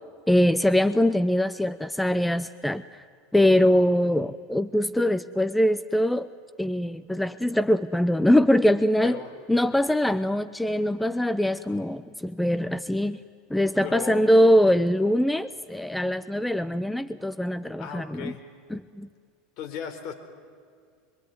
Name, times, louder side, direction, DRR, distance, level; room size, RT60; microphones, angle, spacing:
voice 1, 0.3-2.8 3.3-6.3 6.6-9.2 9.5-13.2 13.5-18.3 18.7-19.1, left 1 dB, 5° left, 13 dB, 0.8 m, -22 dB
voice 2, 13.8-14.3 17.8-18.4 19.6-20.1, left 7 dB, 55° left, 5 dB, 4.1 m, -36 dB
25.0 x 24.0 x 9.7 m, 2.1 s
hypercardioid pair, 80°, 0 cm